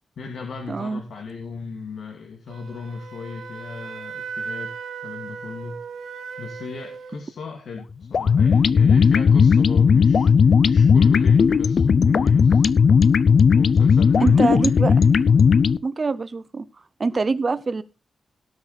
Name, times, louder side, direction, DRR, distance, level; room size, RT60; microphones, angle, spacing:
voice 1, 0.2-4.7 5.0-5.8 6.4-12.6 13.5-15.1, left 5 dB, 75° left, 2 dB, 2.4 m, -36 dB
voice 2, 0.7-1.0 14.2-14.9 15.8-16.7 17.0-17.8, right 4 dB, 35° right, 15 dB, 0.8 m, -24 dB
Wind instrument woodwind instrument, 2.5-7.2, right 5 dB, 80° right, 2.0 m, -36 dB
sound 1, 8.1-15.8, left 6 dB, 55° left, 0.6 m, -16 dB
17.5 x 6.5 x 4.2 m, 0.29 s
wide cardioid pair, 135°, 0 cm